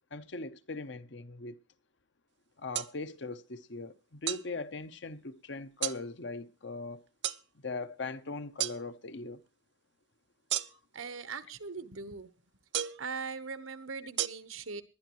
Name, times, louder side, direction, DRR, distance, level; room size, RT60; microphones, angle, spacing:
voice 1, 0.1-1.6 2.6-7.0 7.6-9.4, left 3 dB, 60° left, 0.9 m, -40 dB
sound 1, 2.7-2.9 4.3-4.5 5.8-6.0 7.2-7.4 8.6-8.8 10.5-11.0 12.7-13.1 14.2-14.3, right 12 dB, 55° right, 0.5 m, -32 dB
voice 2, 10.9-12.3 13.0-14.8, right 5 dB, 85° right, 1.2 m, -40 dB
20.0 x 11.5 x 3.1 m
head